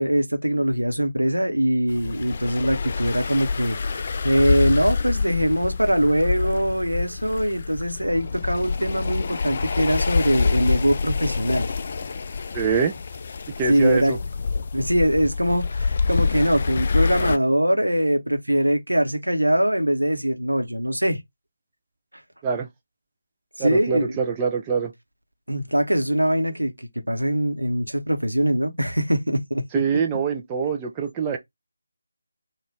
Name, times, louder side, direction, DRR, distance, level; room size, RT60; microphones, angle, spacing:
voice 1, 0.0-11.7 13.7-14.2 14.7-21.2 23.6-24.1 25.5-29.6, equal, 80° right, 0.9 m, -22 dB
sound 1, 1.9-17.4, left 4 dB, 35° left, 0.3 m, -26 dB
voice 2, 12.5-12.9 13.6-14.2 22.4-22.7 23.6-24.9 29.7-31.4, right 6 dB, 15° right, 0.6 m, -24 dB
3.9 x 2.5 x 3.1 m
figure-of-eight pair, 155°, 0 cm